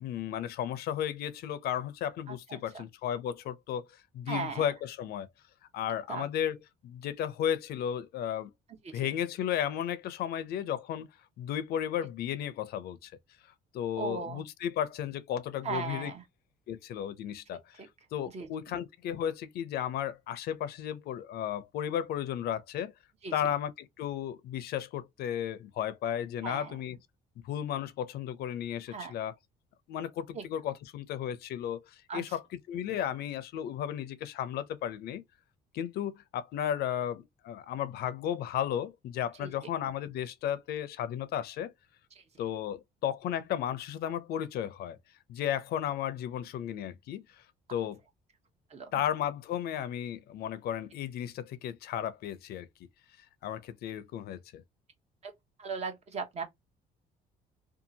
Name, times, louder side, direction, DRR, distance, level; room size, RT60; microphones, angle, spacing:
voice 1, 0.0-5.3 5.7-8.5 8.9-11.1 11.4-13.1 13.7-16.1 16.7-17.8 18.1-22.9 23.3-27.0 27.4-29.3 29.9-35.2 35.7-41.7 42.4-45.0 45.3-47.3 47.7-48.0 48.9-52.7 53.4-54.6, left 10 dB, 70° left, 0.5 m, -34 dB
voice 2, 2.3-2.8 4.3-4.7 6.1-6.2 8.8-9.1 14.0-14.4 15.6-16.2 18.3-18.5 23.2-23.3 26.4-26.8 28.9-29.1 30.3-30.4 32.1-32.2 39.4-39.5 48.7-48.9 55.2-55.3 55.6-56.4, right 5 dB, 40° right, 0.8 m, -37 dB
2.7 x 2.4 x 2.6 m
cardioid pair, 110°, 17 cm